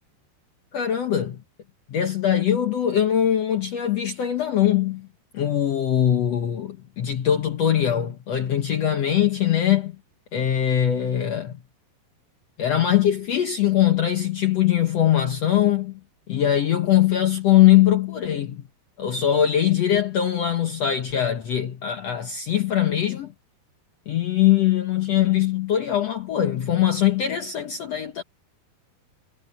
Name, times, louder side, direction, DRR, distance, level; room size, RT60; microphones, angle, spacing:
voice 1, 0.7-1.4 1.9-5.1 5.3-9.9 10.3-11.5 12.6-16.0 16.3-18.6 19.0-23.3 24.1-28.2, left 11 dB, 80° left, 1.4 m, -21 dB
omnidirectional pair, 4.7 m